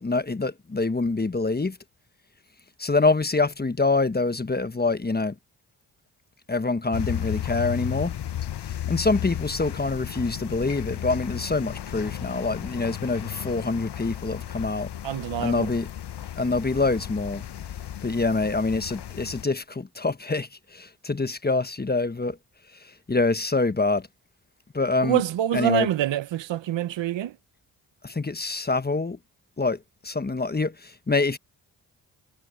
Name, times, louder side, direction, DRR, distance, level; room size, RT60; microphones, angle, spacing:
voice 1, 0.0-1.8 2.8-5.3 6.5-8.2 8.9-14.9 15.4-15.9 16.4-17.4 18.0-22.4 22.8-24.1 24.7-25.2 25.5-25.9 28.0-29.2 29.6-31.4, left 3 dB, 20° left, 1.3 m, -25 dB
sound 1, 6.9-19.4, left 11 dB, 60° left, 1.4 m, -34 dB
voice 2, 15.0-15.7 25.0-27.4, right 12 dB, 75° right, 1.3 m, -25 dB
supercardioid pair, 40°, 45 cm